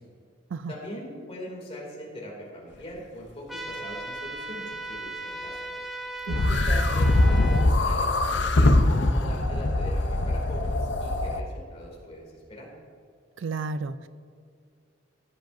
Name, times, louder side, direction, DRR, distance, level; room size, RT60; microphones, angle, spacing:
voice 1, 0.7-5.6 6.2-12.7, equal, 30° left, -2 dB, 2.6 m, -41 dB
sound 1, 3.5-7.7, right 2 dB, ahead, 0.5 m, -37 dB
sound 2, 6.3-11.4, left 2 dB, 65° left, 0.7 m, -22 dB
voice 2, 13.4-14.1, right 4 dB, 75° right, 13 dB, 0.4 m, -32 dB
15.5 x 7.7 x 2.6 m, 2.3 s
head